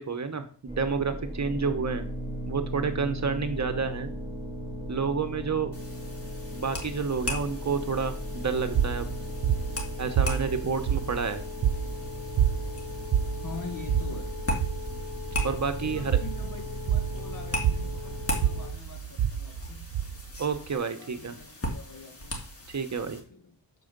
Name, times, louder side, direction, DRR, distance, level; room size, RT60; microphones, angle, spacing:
voice 1, 0.0-2.1 2.4-4.1 4.9-5.7 6.5-9.1 10.0-11.4 15.4-16.2 20.4-21.4 22.7-23.2, right 5 dB, 40° right, 1.0 m, -29 dB
sound 1, 0.7-18.7, left 1 dB, 15° right, 2.9 m, -37 dB
sound 2, 5.7-23.2, equal, 35° left, 2.4 m, -39 dB
sound 3, 8.7-20.7, right 9 dB, 65° right, 0.6 m, -29 dB
voice 2, 13.4-14.4 15.8-20.0 21.0-22.4 23.0-23.6, left 3 dB, 50° left, 1.9 m, -44 dB
6.8 x 4.9 x 6.7 m
cardioid pair, 90°, 42 cm